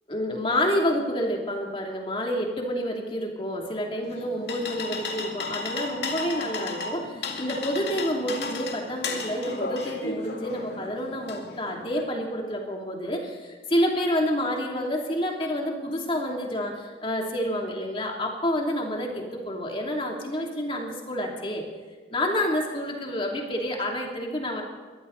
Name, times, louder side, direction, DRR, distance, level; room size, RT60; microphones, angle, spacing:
voice 1, 0.1-21.6 22.1-24.6, equal, 30° left, 0 dB, 2.9 m, -28 dB
sound 1, 4.0-12.0, left 3 dB, 70° left, 2.2 m, -34 dB
22.0 x 15.0 x 4.1 m, 1.4 s
head